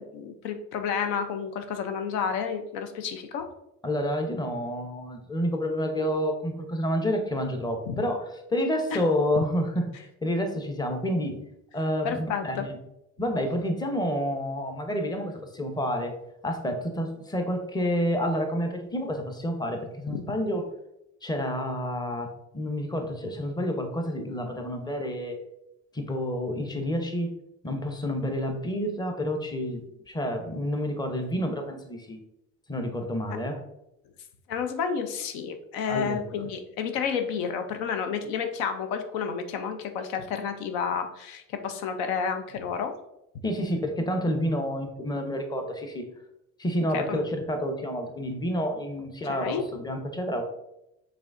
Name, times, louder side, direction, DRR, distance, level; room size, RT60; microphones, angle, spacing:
voice 1, 0.0-3.4 7.9-8.0 12.0-12.7 20.1-20.2 34.5-42.9 46.9-47.2 49.3-49.6, left 6 dB, 75° left, 7 dB, 0.6 m, -30 dB
voice 2, 3.8-8.2 8.5-11.3 11.7-12.8 13.2-16.1 16.4-20.6 21.2-22.3 22.5-25.4 25.9-27.3 27.6-32.2 32.7-33.6 35.9-36.2 43.4-46.1 46.6-50.4, equal, 10° left, 4 dB, 0.7 m, -29 dB
4.8 x 3.4 x 2.5 m, 0.85 s
supercardioid pair, 75°, 36 cm